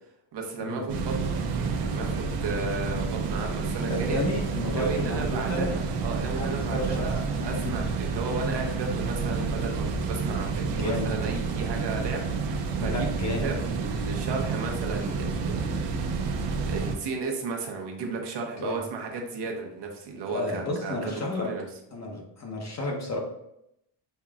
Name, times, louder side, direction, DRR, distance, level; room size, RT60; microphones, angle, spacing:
voice 1, 0.3-4.2 4.7-13.1 13.4-21.6, right 4 dB, 55° right, 2 dB, 0.9 m, -34 dB
sound 1, 0.9-16.9, right 4 dB, 85° right, 0.8 m, -29 dB
voice 2, 3.9-5.7 6.4-7.1 7.5-7.8 10.7-11.1 12.8-13.5 18.6-18.8 20.3-21.5 21.9-23.2, left 2 dB, 35° left, 0 dB, 1.0 m, -32 dB
5.4 x 2.9 x 2.4 m, 0.80 s
cardioid pair, 135°, 50 cm